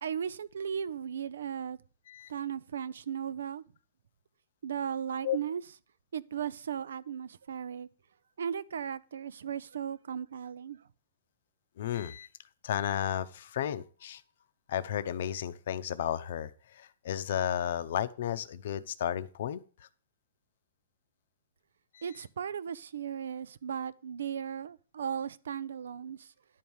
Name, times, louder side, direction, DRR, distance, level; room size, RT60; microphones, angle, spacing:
voice 1, 0.0-1.8 2.3-3.6 4.6-5.6 6.1-7.9 8.4-10.8 22.0-26.3, right 8 dB, 85° right, 0.6 m, -36 dB
voice 2, 11.8-12.3 12.6-14.2 14.7-19.6 21.9-22.0, left 10 dB, 50° left, 0.7 m, -33 dB
11.0 x 4.7 x 7.1 m
hypercardioid pair, 175°, 0 cm